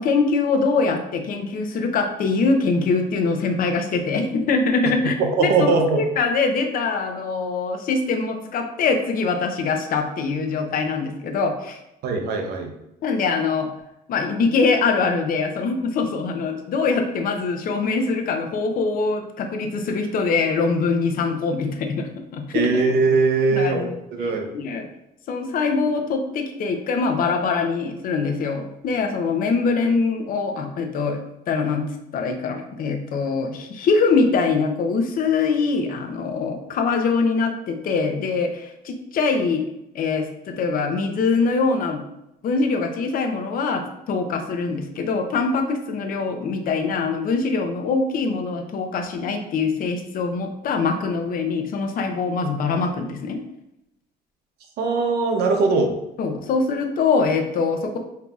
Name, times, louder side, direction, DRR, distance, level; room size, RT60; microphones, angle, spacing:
voice 1, 0.0-11.8 13.0-13.7 14.1-22.6 23.5-23.9 24.2-24.9 25.3-31.2 31.5-39.6 39.9-42.0 42.4-53.4 56.2-58.0, left 4 dB, 55° left, 5 dB, 0.6 m, -23 dB
voice 2, 5.2-6.0 12.0-12.7 22.5-24.5 54.8-55.9, right 4 dB, 70° right, 4 dB, 0.8 m, -20 dB
5.3 x 2.8 x 2.4 m, 0.86 s
cardioid pair, 110°, 17 cm